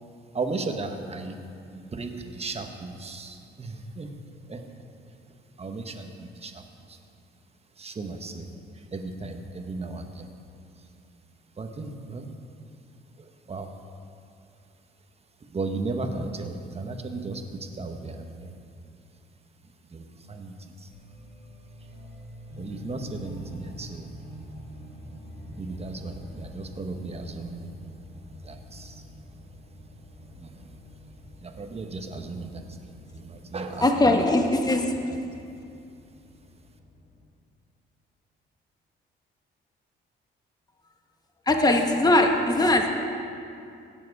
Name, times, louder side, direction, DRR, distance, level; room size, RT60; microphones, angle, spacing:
voice 1, 0.3-1.4 1.7-4.1 4.5-4.6 5.6-7.0 7.8-8.5 8.7-10.3 11.6-12.3 13.2-13.7 15.5-18.5 19.9-20.9 22.6-24.1 25.6-27.7 28.4-29.0 30.4-30.7 31.4-32.6 33.1-34.2, right 3 dB, 30° right, 5 dB, 1.2 m, -35 dB
sound 1, 20.9-37.2, equal, 60° left, 2.8 m, -46 dB
voice 2, 33.8-34.9 41.5-42.9, left 2 dB, 20° left, 4 dB, 1.2 m, -20 dB
17.0 x 7.7 x 4.8 m, 2.5 s
cardioid pair, 90°, 20 cm